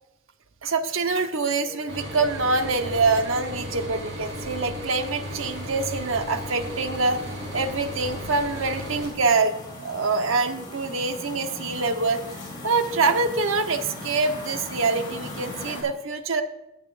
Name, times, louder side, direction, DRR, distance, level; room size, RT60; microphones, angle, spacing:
voice 1, 0.6-7.2 7.5-16.4, right 3 dB, 80° right, 6 dB, 1.1 m, -25 dB
sound 1, 0.7-15.8, left 2 dB, 25° left, 4.5 m, -41 dB
sound 2, 1.9-9.1, equal, 60° right, 3.9 m, -35 dB
19.0 x 8.9 x 2.6 m, 0.89 s
head